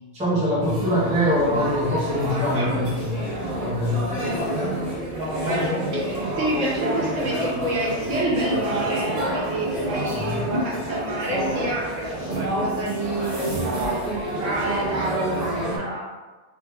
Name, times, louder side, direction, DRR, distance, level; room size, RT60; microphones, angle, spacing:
voice 1, 0.1-3.2 3.6-4.1 4.5-4.7 10.0-10.4, equal, 10° right, -6 dB, 0.4 m, -23 dB
sound 1, 0.6-15.8, right 1 dB, 35° right, 1.2 m, -28 dB
voice 2, 2.3-2.8 5.4-12.0 12.3-16.1, right 1 dB, 75° right, -4 dB, 1.2 m, -29 dB
3.4 x 3.0 x 2.2 m, 1.2 s
omnidirectional pair, 1.3 m